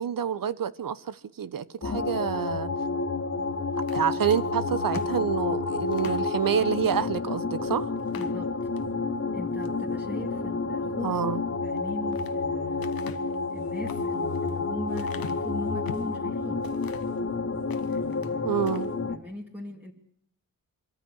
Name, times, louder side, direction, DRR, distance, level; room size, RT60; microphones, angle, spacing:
voice 1, 0.0-2.7 3.9-7.9 11.0-11.4 18.4-18.9, right 8 dB, 65° right, 1.0 m, -28 dB
sound 1, 1.8-19.2, left 4 dB, 45° left, 2.1 m, -30 dB
sound 2, 3.8-6.3 6.8-7.0 7.4-7.5 8.0-8.9 9.4-9.8 11.6-12.4 12.8-16.2 16.6-17.2 17.6-18.3 18.6-18.9, left 7 dB, 80° left, 1.3 m, -43 dB
voice 2, 8.1-8.6 9.3-11.2 11.6-13.0 13.5-16.7 17.9-18.6 19.1-19.9, left 1 dB, 5° right, 2.5 m, -39 dB
24.5 x 14.0 x 9.6 m
cardioid pair, 80°, 35 cm